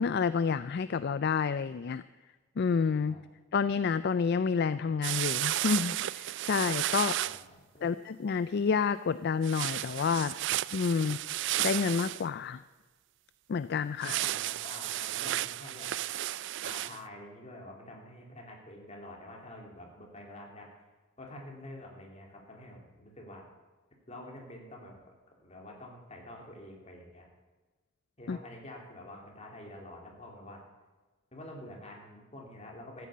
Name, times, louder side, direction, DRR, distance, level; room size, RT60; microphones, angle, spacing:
voice 1, 0.0-2.0 2.6-3.2 3.5-7.2 7.8-10.3 10.7-11.2 11.6-12.6 13.5-14.2 28.3-28.4, left 5 dB, 55° left, 15 dB, 0.4 m, -29 dB
sound 1, 5.0-7.4 9.4-12.2 14.0-17.0, right 14 dB, 60° right, 0.3 m, -33 dB
voice 2, 7.2-7.9 14.0-15.9 16.6-20.7 21.2-23.5 24.1-25.0 25.4-27.3 28.2-30.6 31.3-33.1, left 1 dB, 35° left, 0 dB, 3.3 m, -47 dB
14.0 x 9.5 x 8.5 m, 1.2 s
head